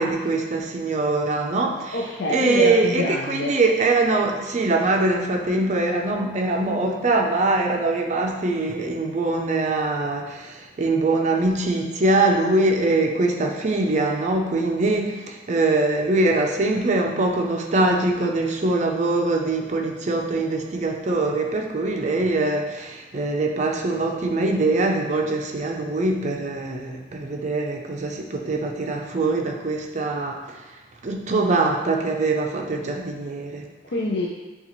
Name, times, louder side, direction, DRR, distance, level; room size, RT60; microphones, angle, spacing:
voice 1, 0.0-2.0 2.3-30.6 31.0-33.7, right 2 dB, 40° right, 2 dB, 0.5 m, -23 dB
voice 2, 1.9-3.6 33.8-34.3, left 2 dB, 70° left, -3 dB, 0.5 m, -26 dB
6.6 x 2.4 x 3.0 m, 1.2 s
head